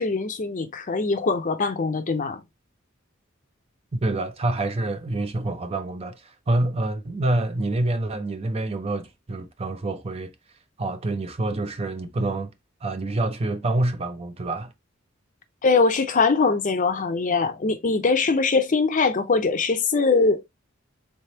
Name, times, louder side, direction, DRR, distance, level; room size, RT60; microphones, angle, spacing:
voice 1, 0.0-2.4 15.6-20.5, left 4 dB, 40° left, 0.6 m, -22 dB
voice 2, 3.9-10.3 10.8-12.5 12.8-14.7, right 2 dB, 30° right, 0.5 m, -27 dB
4.0 x 3.4 x 2.8 m
head